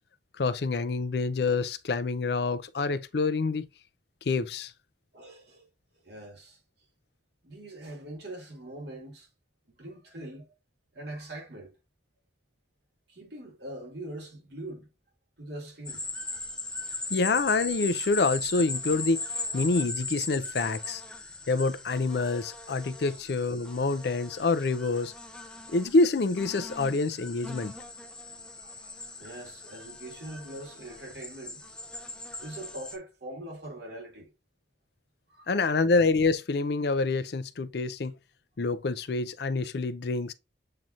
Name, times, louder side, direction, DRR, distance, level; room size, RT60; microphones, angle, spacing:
voice 1, 0.4-3.7 4.3-4.7 17.1-19.2 19.5-21.0 21.5-25.1 25.7-27.7 35.5-38.1 38.6-40.3, left 3 dB, 60° left, 0.5 m, -27 dB
voice 2, 5.1-5.7 6.0-6.6 7.4-9.3 9.7-10.5 10.9-11.7 13.1-14.9 15.4-16.5 23.1-23.2 28.6-31.6 32.4-34.3 35.3-35.5, right 1 dB, 65° right, 2.3 m, -42 dB
sound 1, 15.9-33.0, left 2 dB, 5° left, 0.6 m, -39 dB
7.5 x 2.9 x 2.4 m
head